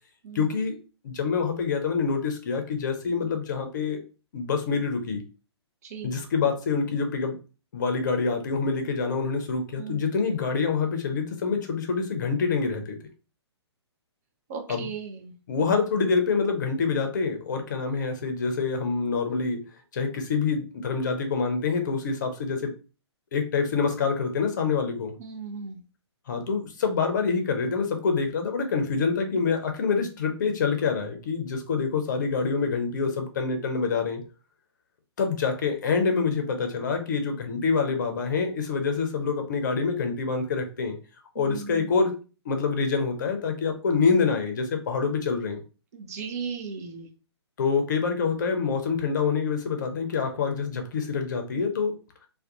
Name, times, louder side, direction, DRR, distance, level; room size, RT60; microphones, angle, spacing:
voice 1, 0.3-0.8 1.0-4.0 4.3-5.2 6.0-7.4 7.7-13.0 14.7-14.9 15.5-19.6 19.9-22.7 23.3-25.1 26.3-34.2 35.2-41.0 41.3-42.1 42.4-45.6 47.6-52.0, left 5 dB, 45° left, 5 dB, 0.6 m, -26 dB
voice 2, 5.8-6.2 9.8-10.0 14.5-15.3 25.2-25.8 41.4-41.9 45.9-47.1, right 5 dB, 35° right, 4 dB, 0.5 m, -36 dB
2.3 x 2.2 x 2.7 m, 0.34 s
figure-of-eight pair, 125°, 14 cm